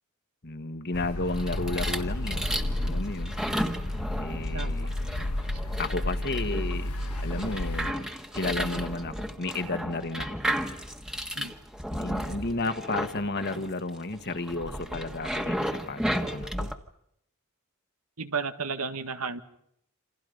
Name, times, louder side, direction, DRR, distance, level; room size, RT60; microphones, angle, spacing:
voice 1, 0.4-2.5 2.8-3.4 4.2-4.9 5.8-6.9 7.2-10.4 11.3-11.5 11.9-16.7, left 2 dB, 50° left, 8 dB, 1.7 m, -33 dB
sound 1, 0.9-7.9, left 1 dB, 80° left, 1.3 m, -32 dB
sound 2, 1.3-16.7, equal, 5° right, 1.6 m, -34 dB
voice 2, 4.5-4.9 5.5-5.6 11.4-11.5 18.2-19.4, right 5 dB, 80° right, 9 dB, 1.9 m, -33 dB
28.5 x 28.0 x 5.3 m, 0.73 s
head